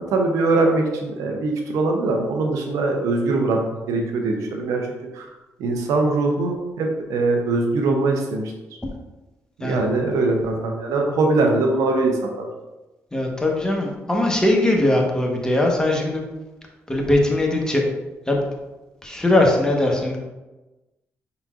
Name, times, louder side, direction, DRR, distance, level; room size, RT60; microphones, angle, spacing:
voice 1, 0.1-4.9 5.1-5.3 5.6-8.5 9.6-12.5, right 3 dB, 90° right, 3 dB, 0.7 m, -22 dB
voice 2, 13.1-16.2 16.9-17.8 18.3-18.4 19.0-20.2, left 1 dB, 15° left, 0 dB, 1.1 m, -20 dB
5.5 x 3.9 x 2.4 m, 1.1 s
cardioid pair, 65°, 5 cm